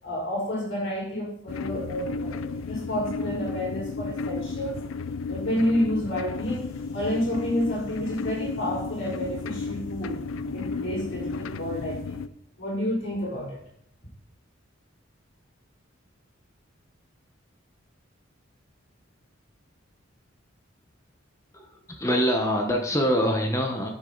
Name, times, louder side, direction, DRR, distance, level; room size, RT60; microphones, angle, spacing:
voice 1, 0.0-4.8 5.3-6.7 6.9-10.2 10.5-12.2 12.6-13.6, equal, 60° left, -9 dB, 4.4 m, -30 dB
sound 1, 1.5-12.3, left 4 dB, 75° left, 0.4 m, -33 dB
voice 2, 21.5-23.9, equal, 15° left, 2 dB, 1.1 m, -25 dB
11.0 x 6.9 x 4.0 m, 0.71 s
head